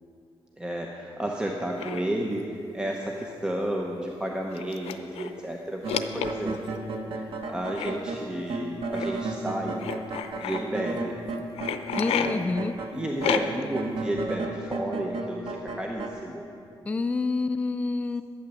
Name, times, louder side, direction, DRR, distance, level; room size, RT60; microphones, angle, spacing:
voice 1, 0.6-5.8 6.1-6.8 7.1-9.8 10.4-11.2 12.1-12.4 12.9-16.4, right 1 dB, 10° right, 0 dB, 0.8 m, -32 dB
sound 1, 1.8-2.0 3.2-3.3 3.6-3.7 4.5-5.4 5.9-6.7 7.7-7.9 8.9-9.1 9.8-10.6 11.6-12.3 13.2-13.7, left 9 dB, 90° left, 0.6 m, -30 dB
sound 2, 5.8-12.9 13.2-16.1, right 3 dB, 65° right, 1.2 m, -33 dB
voice 2, 12.0-12.7 16.9-18.2, left 3 dB, 15° left, 8 dB, 0.4 m, -27 dB
11.5 x 9.1 x 7.1 m, 2.8 s
wide cardioid pair, 155°, 10 cm